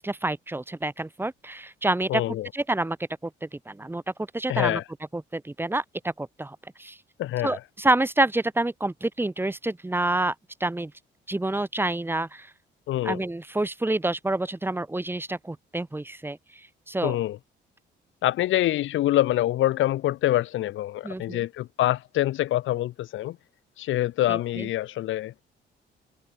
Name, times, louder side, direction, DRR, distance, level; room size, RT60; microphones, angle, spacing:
voice 1, 0.0-2.2 2.5-3.0 3.2-4.0 4.3-4.8 5.1-7.0 7.4-10.3 10.6-10.9 11.3-12.5 13.0-16.4 16.9-17.1 21.0-21.4 24.3-24.7, right 2 dB, 10° right, 1.2 m, -28 dB
voice 2, 2.1-2.5 4.5-4.8 7.2-7.6 12.9-13.2 17.0-17.4 18.2-23.4 23.8-25.3, left 14 dB, 80° left, 1.2 m, -25 dB
cardioid pair, 90°, 20 cm